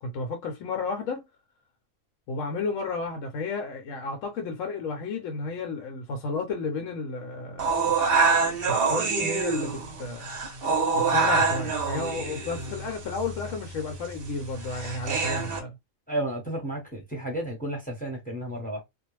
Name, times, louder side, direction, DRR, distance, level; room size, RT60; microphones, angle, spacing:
voice 1, 0.0-1.2 2.3-7.9 8.2-10.3 10.9-15.8, left 3 dB, 75° left, 1.0 m, -32 dB
sound 1, 7.6-15.6, right 4 dB, 55° right, 0.8 m, -26 dB
voice 2, 16.1-18.8, right 1 dB, 5° left, 0.8 m, -32 dB
2.4 x 2.0 x 3.1 m
omnidirectional pair, 1.4 m